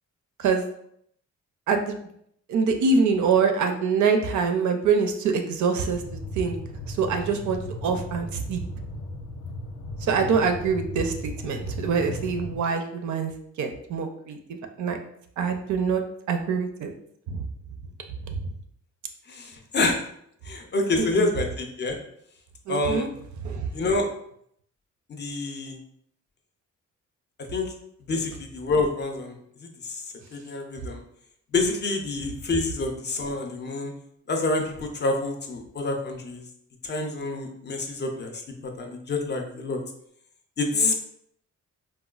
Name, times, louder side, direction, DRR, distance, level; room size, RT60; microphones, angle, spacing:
voice 1, 1.7-2.0 2.5-6.6 6.9-8.6 10.1-13.3 13.6-15.0 15.4-16.9 17.3-17.4 18.3-18.5 21.0-21.3 22.7-23.1 23.4-23.7 40.7-40.9, right 5 dB, 75° right, 6 dB, 0.5 m, -25 dB
sound 1, 5.8-12.6, left 1 dB, 90° left, 0.6 m, -36 dB
voice 2, 19.3-20.0 20.4-22.0 22.7-23.1 23.7-24.1 25.1-25.8 27.5-27.7 28.1-30.0 30.3-31.0 31.5-33.9 34.3-36.4 36.8-39.8 40.6-40.9, left 3 dB, 35° left, 3 dB, 0.4 m, -27 dB
4.0 x 2.2 x 2.3 m, 0.70 s
wide cardioid pair, 175°, 30 cm